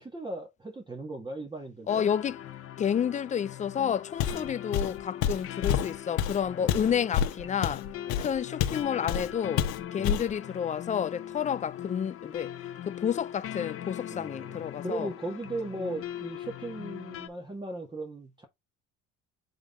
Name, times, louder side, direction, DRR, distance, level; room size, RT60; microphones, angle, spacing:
voice 1, 0.0-2.1 4.3-4.5 6.6-7.0 8.1-8.3 10.0-10.2 14.1-18.5, right 2 dB, 15° right, 1.7 m, -38 dB
sound 1, 1.9-17.3, left 11 dB, 50° left, 1.3 m, -41 dB
voice 2, 1.9-2.4 2.8-7.8 8.2-9.6 9.9-12.5 12.9-15.1, left 8 dB, 25° left, 0.4 m, -30 dB
Walk footsteps, 4.2-4.5 4.7-8.8 9.1-9.3 9.6-10.3, left 9 dB, 85° left, 1.3 m, -28 dB
7.9 x 3.8 x 3.6 m
cardioid pair, 105°, 29 cm